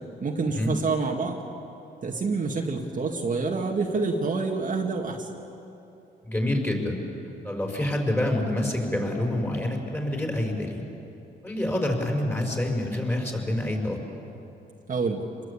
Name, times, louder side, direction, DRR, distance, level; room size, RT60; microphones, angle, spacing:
voice 1, 0.2-1.4 2.0-5.3 14.9-15.3, right 4 dB, 45° right, 0 dB, 2.1 m, -27 dB
voice 2, 6.2-7.0 7.4-10.8 11.4-14.0, left 1 dB, 10° left, 1 dB, 5.9 m, -27 dB
26.5 x 21.0 x 8.7 m, 2.8 s
cardioid pair, 95°, 19 cm